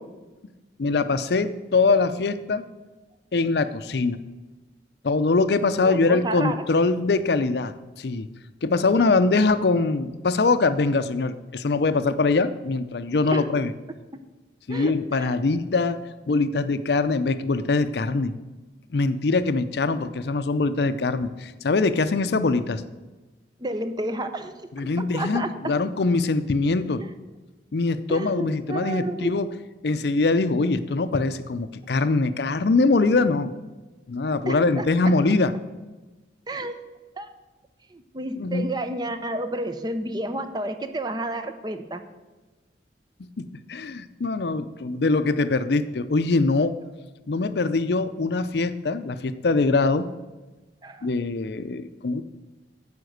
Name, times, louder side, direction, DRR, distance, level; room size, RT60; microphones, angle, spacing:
voice 1, 0.8-2.6 3.3-4.2 5.0-8.3 8.6-13.7 14.7-16.0 16.3-18.3 18.9-22.8 24.8-27.0 27.7-29.5 29.8-33.5 34.1-35.5 38.4-38.7 43.2-46.7 47.3-50.1 51.0-52.2, left 3 dB, 65° left, 12 dB, 0.5 m, -23 dB
voice 2, 5.8-6.6 13.3-13.4 14.1-14.2 14.7-14.9 23.6-24.5 25.0-25.8 27.0-27.1 28.1-29.5 34.5-34.8 36.5-36.7 37.2-37.3 37.9-42.0 50.8-51.1, right 1 dB, 25° right, 9 dB, 0.6 m, -31 dB
9.8 x 5.2 x 7.9 m, 1.2 s
head